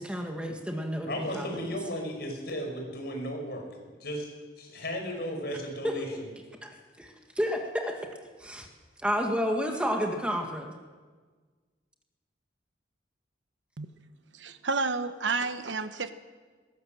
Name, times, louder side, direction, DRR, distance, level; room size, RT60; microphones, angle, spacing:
voice 1, 0.0-1.7 5.8-5.9 6.6-8.0 8.4-8.7 9.0-10.7, equal, 5° right, 2 dB, 1.7 m, -31 dB
voice 2, 1.1-3.6 4.0-4.3 4.6-6.3, equal, 60° left, 2 dB, 5.3 m, -35 dB
voice 3, 14.3-16.1, right 4 dB, 80° right, 10 dB, 1.1 m, -30 dB
20.5 x 17.0 x 7.6 m, 1.5 s
head